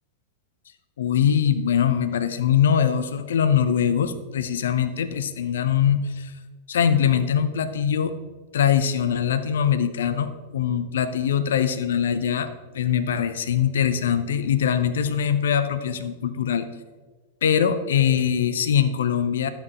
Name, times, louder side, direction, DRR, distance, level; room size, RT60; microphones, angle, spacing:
voice 1, 1.0-6.3 6.7-8.1 8.5-12.5 12.7-16.7 17.4-19.5, left 8 dB, 65° left, 11 dB, 0.7 m, -22 dB
12.0 x 8.0 x 4.4 m, 1.3 s
figure-of-eight pair, 90°, 0 cm